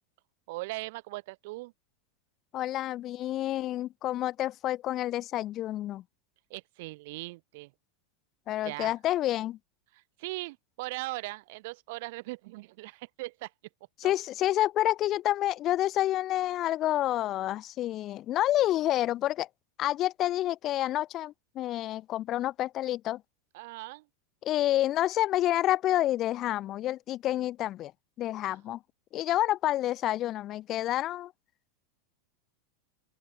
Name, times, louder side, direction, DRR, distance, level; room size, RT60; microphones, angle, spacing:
voice 1, 0.5-1.7 6.5-7.7 8.6-8.9 9.9-13.5 14.0-14.1 23.5-24.1 28.4-28.6, right 22 dB, 50° right, 3.8 m, -39 dB
voice 2, 2.5-6.0 8.5-9.6 14.0-19.5 19.8-23.2 24.4-27.9 28.2-28.8 29.1-31.3, left 14 dB, 25° left, 2.4 m, -28 dB
open air
supercardioid pair, 170°, 0 cm